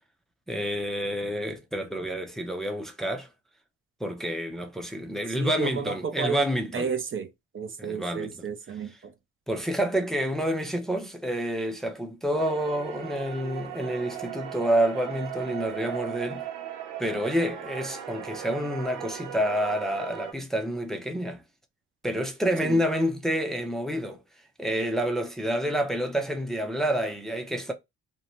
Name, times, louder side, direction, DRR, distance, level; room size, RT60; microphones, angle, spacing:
voice 1, 0.5-3.3 4.0-6.9 7.8-8.3 9.5-16.5 17.0-21.4 22.0-24.2 24.6-27.7, equal, ahead, 0.5 m, -28 dB
voice 2, 5.4-6.5 6.7-9.1 22.6-22.8, right 6 dB, 45° right, 0.6 m, -32 dB
sound 1, 12.4-20.3, right 10 dB, 90° right, 0.8 m, -38 dB
2.6 x 2.2 x 3.0 m
cardioid pair, 90°, 30 cm